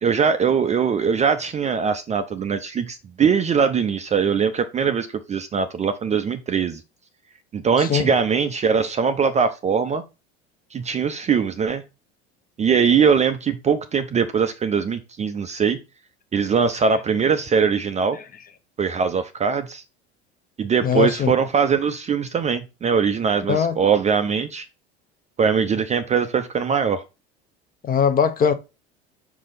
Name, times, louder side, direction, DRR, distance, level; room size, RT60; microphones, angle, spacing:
voice 1, 0.0-6.8 7.5-10.0 10.7-11.8 12.6-15.8 16.3-18.2 18.8-19.8 20.6-24.7 25.4-27.0, right 6 dB, 20° right, 0.5 m, -21 dB
voice 2, 7.8-8.1 20.8-21.3 23.5-23.8 27.8-28.5, left 7 dB, 25° left, 0.8 m, -20 dB
5.4 x 4.9 x 4.0 m
figure-of-eight pair, 75°, 34 cm